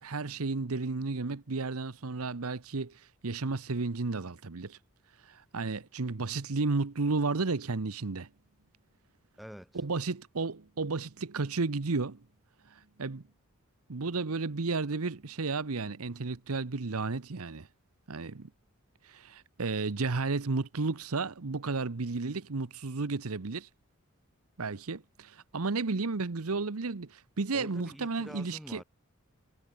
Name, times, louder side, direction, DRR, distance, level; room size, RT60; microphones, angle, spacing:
voice 1, 0.0-4.8 5.2-8.3 9.7-12.2 12.7-13.2 13.9-17.7 18.1-18.5 19.0-23.7 24.6-28.8, right 3 dB, 75° right, 0.9 m, -33 dB
voice 2, 9.4-9.8 27.5-28.8, equal, ahead, 2.6 m, -47 dB
head